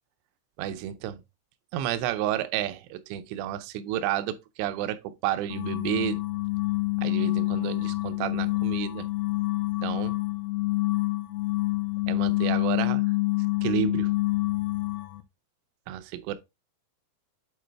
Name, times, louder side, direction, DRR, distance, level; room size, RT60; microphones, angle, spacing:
voice 1, 0.6-1.2 1.7-6.2 7.0-9.1 9.8-10.1 12.1-13.1 13.6-14.1 15.9-16.4, right 12 dB, 80° right, 2.6 m, -31 dB
sound 1, 5.5-15.2, left 21 dB, 85° left, 3.2 m, -27 dB
7.7 x 4.6 x 3.3 m
omnidirectional pair, 5.7 m